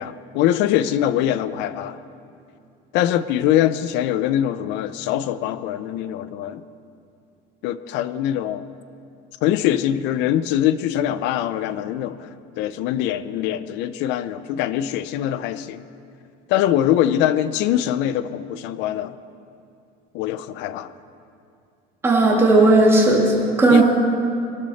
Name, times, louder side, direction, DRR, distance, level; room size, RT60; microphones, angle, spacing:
voice 1, 0.0-2.0 2.9-6.6 7.6-8.7 9.4-12.3 12.6-15.8 16.5-19.1 20.1-20.9 23.7-23.8, left 11 dB, 60° left, 14 dB, 0.6 m, -23 dB
voice 2, 22.0-23.8, right 2 dB, 10° right, -2 dB, 2.1 m, -15 dB
22.0 x 12.5 x 4.2 m, 2.5 s
cardioid pair, 170°, 21 cm